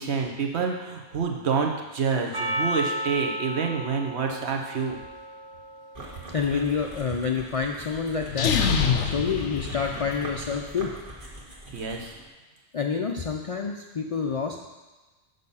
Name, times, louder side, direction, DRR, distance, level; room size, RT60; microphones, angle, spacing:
voice 1, 0.0-5.0 11.7-12.1, right 5 dB, 70° right, 2 dB, 1.1 m, -28 dB
Percussion, 2.3-6.6, equal, 25° right, 0.8 m, -34 dB
sound 1, 5.9-12.3, right 1 dB, 50° right, 1.5 m, -42 dB
voice 2, 6.3-8.5 9.0-10.9 12.7-14.7, left 5 dB, 55° left, 2 dB, 0.4 m, -28 dB
sound 2, 8.3-10.4, left 6 dB, 90° left, 1.0 m, -25 dB
6.7 x 5.4 x 5.5 m, 1.2 s
omnidirectional pair, 1.2 m